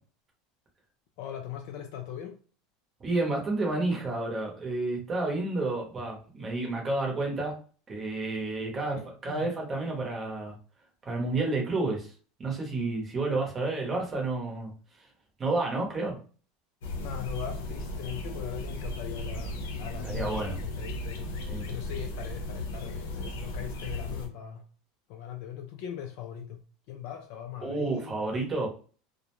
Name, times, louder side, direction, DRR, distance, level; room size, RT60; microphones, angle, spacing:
voice 1, 1.2-2.4 8.8-9.5 17.0-24.6 25.1-26.6 26.9-28.5, left 9 dB, 55° left, 4 dB, 0.3 m, -40 dB
voice 2, 3.0-7.5 7.9-9.0 9.2-10.6 11.0-12.1 12.4-14.7 15.4-16.2 20.0-20.6 21.5-21.7 27.6-28.7, right 2 dB, 20° right, 0 dB, 0.8 m, -30 dB
sound 1, 16.8-24.3, left 1 dB, 85° left, 0.7 m, -36 dB
2.4 x 2.0 x 2.9 m, 0.40 s
supercardioid pair, 170°, 0 cm